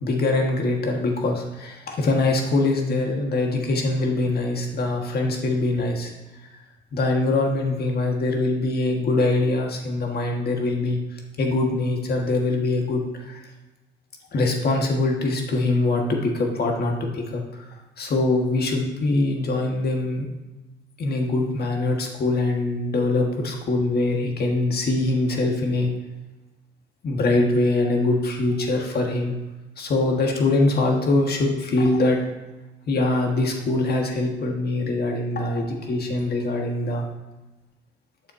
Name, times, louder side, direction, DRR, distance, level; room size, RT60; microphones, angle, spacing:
voice 1, 0.0-6.1 6.9-11.0 11.4-13.4 14.3-17.4 18.0-20.3 21.0-25.9 27.0-29.3 29.8-32.2 32.9-37.0, left 2 dB, 50° left, 1 dB, 1.7 m, -23 dB
9.0 x 6.9 x 2.8 m, 1.1 s
cardioid pair, 90°, 20 cm